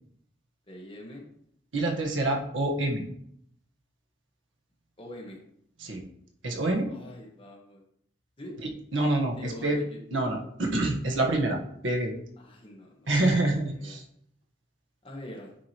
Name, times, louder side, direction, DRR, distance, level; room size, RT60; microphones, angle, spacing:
voice 1, 0.7-1.2 5.0-5.4 6.9-7.8 8.4-8.6 9.4-10.0 12.4-14.0 15.0-15.5, left 1 dB, 30° left, -1 dB, 1.4 m, -44 dB
voice 2, 1.7-3.0 5.8-6.0 6.4-6.9 8.9-9.8 10.1-11.6 11.8-12.1 13.1-14.0, right 2 dB, 90° right, 1 dB, 1.3 m, -26 dB
8.5 x 4.8 x 3.0 m, 0.69 s
head